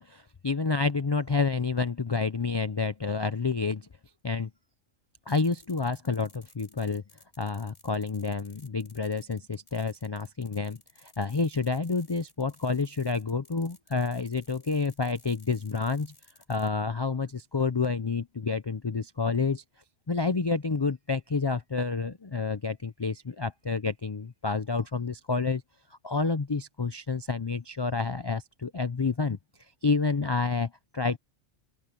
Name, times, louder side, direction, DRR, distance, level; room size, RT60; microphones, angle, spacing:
voice 1, 0.0-3.9 4.2-4.5 5.3-7.0 7.4-16.1 16.5-19.6 20.1-25.6 26.0-29.4 29.8-31.2, left 4 dB, 35° left, 0.4 m, -29 dB
sound 1, 5.3-16.7, left 2 dB, 50° left, 4.3 m, -57 dB
open air
omnidirectional pair, 1.3 m